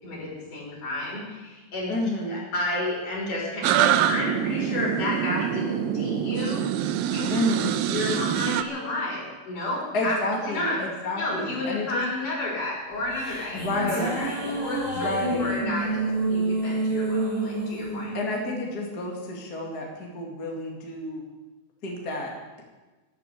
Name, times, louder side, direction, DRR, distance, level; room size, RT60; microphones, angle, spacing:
voice 1, 0.0-1.9 2.3-6.6 7.1-7.3 7.8-10.2 10.4-10.8 11.2-15.1 15.4-18.1, left 2 dB, 60° left, -4 dB, 7.2 m, -31 dB
voice 2, 1.9-2.4 7.3-7.8 9.9-12.0 13.5-14.2 14.9-15.6 18.1-21.2 21.8-22.3, left 1 dB, 30° left, -1 dB, 2.3 m, -30 dB
sound 1, 3.6-8.6, right 10 dB, 85° right, 2.6 m, -25 dB
sound 2, 12.9-19.5, right 2 dB, 35° right, 6.9 m, -29 dB
12.5 x 12.5 x 8.3 m, 1.2 s
omnidirectional pair, 4.1 m